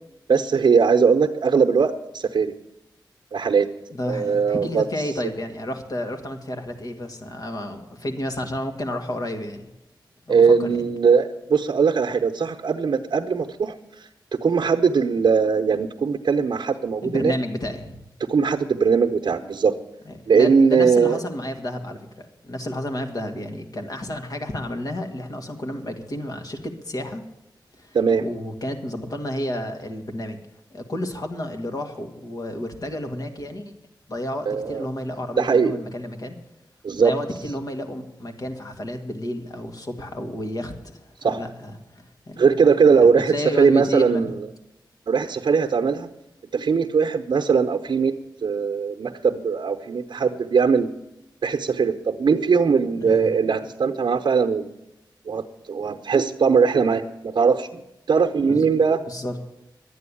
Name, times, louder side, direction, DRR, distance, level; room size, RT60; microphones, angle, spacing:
voice 1, 0.3-2.5 3.3-3.7 4.1-4.8 10.3-17.3 18.2-19.7 20.3-21.2 27.9-28.2 34.5-34.9 35.4-35.8 36.8-37.1 41.2-41.4 42.4-44.5 45.1-46.1 46.5-48.1 48.4-50.9 51.4-54.7 55.3-57.8 58.1-59.0, right 5 dB, 75° right, 3 dB, 0.9 m, -20 dB
voice 2, 3.9-9.6 10.3-10.8 17.0-17.9 20.1-27.2 27.8-30.4 30.7-33.7 34.1-36.4 37.0-42.5 42.9-44.3 53.0-53.3 58.5-58.7 59.1-59.4, left 1 dB, 50° left, 6 dB, 2.0 m, -31 dB
12.0 x 9.3 x 9.9 m, 0.94 s
wide cardioid pair, 120°, 8 cm